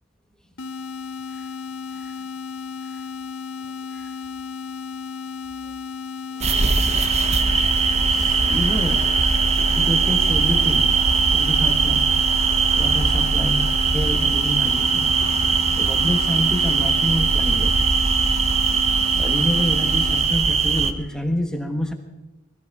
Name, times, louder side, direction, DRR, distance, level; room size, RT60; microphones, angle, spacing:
sound 1, 0.6-20.3, left 5 dB, 65° left, 1.6 m, -34 dB
voice 1, 1.9-2.3 2.9-3.0 3.9-4.1 7.8-9.1 9.7-11.0 11.3-15.1 15.7-17.9 19.1-21.9, left 1 dB, 5° left, 4 dB, 1.2 m, -28 dB
sound 2, 6.4-20.9, right 5 dB, 30° right, 0.9 m, -20 dB
20.0 x 14.5 x 4.7 m, 1.1 s
head